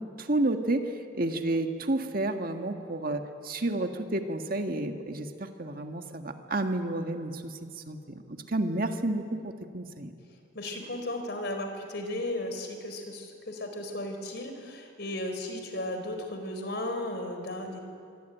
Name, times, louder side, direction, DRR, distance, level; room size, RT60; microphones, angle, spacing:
voice 1, 0.0-10.1, right 2 dB, 50° right, 5 dB, 1.8 m, -31 dB
voice 2, 10.5-17.8, left 1 dB, 60° left, 6 dB, 4.5 m, -35 dB
26.5 x 23.0 x 9.3 m, 2.3 s
head